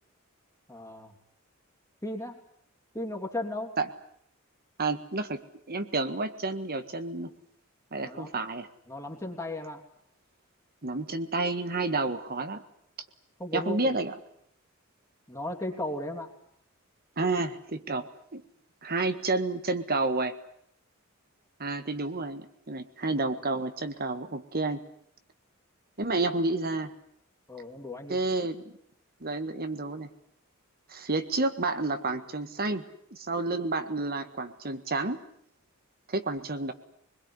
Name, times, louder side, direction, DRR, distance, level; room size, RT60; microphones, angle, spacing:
voice 1, 0.7-1.1 2.0-2.4 2.9-3.7 8.0-8.3 8.9-9.8 13.4-14.0 15.3-16.3 27.5-28.2, left 1 dB, 15° left, 2 dB, 3.1 m, -35 dB
voice 2, 4.8-5.4 5.7-7.4 7.9-8.7 10.8-12.6 13.5-14.1 17.2-18.0 18.3-18.4 18.8-20.3 21.6-24.8 26.0-26.9 28.1-28.6 29.2-30.1 30.9-32.8 33.1-35.2 36.1-36.7, right 3 dB, 45° right, 10 dB, 1.7 m, -30 dB
24.0 x 21.5 x 9.8 m, 0.69 s
head